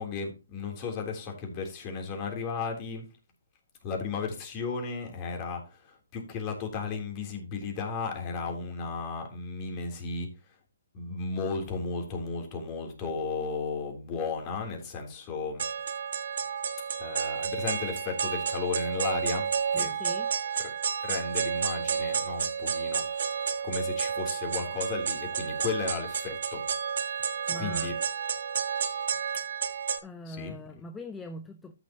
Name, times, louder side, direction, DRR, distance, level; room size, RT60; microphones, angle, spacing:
voice 1, 0.0-3.1 3.8-10.6 10.9-15.6 17.0-19.9 20.6-20.7 21.0-26.6 27.5-27.9 30.2-30.6, left 4 dB, 30° left, 3.3 m, -34 dB
sound 1, 15.6-30.0, right 7 dB, 60° right, 1.3 m, -31 dB
voice 2, 19.7-20.3 27.0-27.1 27.5-27.9 30.0-31.7, equal, 10° left, 0.7 m, -42 dB
13.5 x 6.2 x 2.9 m
hypercardioid pair, 140°, 0 cm